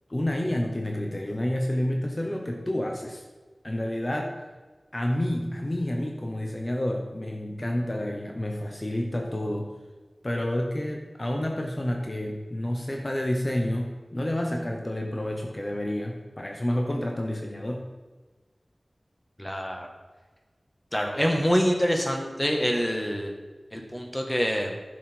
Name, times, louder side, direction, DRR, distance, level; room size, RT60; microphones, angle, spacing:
voice 1, 0.1-3.2 3.6-4.4 4.9-9.7 10.2-17.8, left 1 dB, 35° left, 2 dB, 1.0 m, -29 dB
voice 2, 19.4-19.9 20.9-23.3 23.7-24.7, equal, 15° left, 2 dB, 1.6 m, -26 dB
10.0 x 6.6 x 4.5 m, 1.3 s
wide cardioid pair, 60°, 0 cm